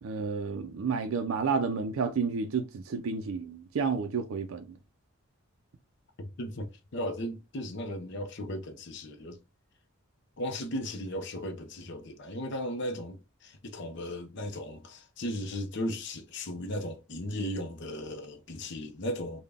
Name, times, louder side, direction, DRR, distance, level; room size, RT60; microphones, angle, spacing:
voice 1, 0.0-4.7, right 5 dB, 70° right, 0.4 m, -31 dB
voice 2, 6.4-9.4 10.4-19.4, left 1 dB, 55° left, 0.7 m, -36 dB
3.8 x 2.2 x 3.4 m
head